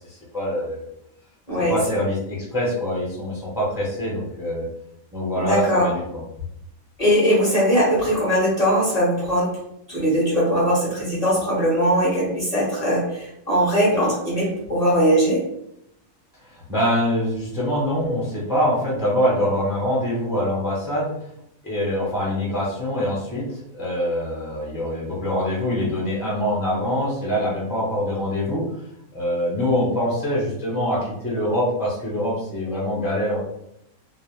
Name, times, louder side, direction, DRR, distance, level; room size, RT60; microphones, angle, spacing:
voice 1, 0.1-0.8 1.6-4.7 5.1-6.0 16.4-21.1 21.6-28.6 29.1-33.4, equal, 5° right, -6 dB, 0.4 m, -24 dB
voice 2, 1.5-1.8 5.3-5.9 7.0-9.5 9.9-15.4, equal, 35° left, -7 dB, 0.7 m, -20 dB
2.4 x 2.0 x 3.1 m, 0.78 s
omnidirectional pair, 1.5 m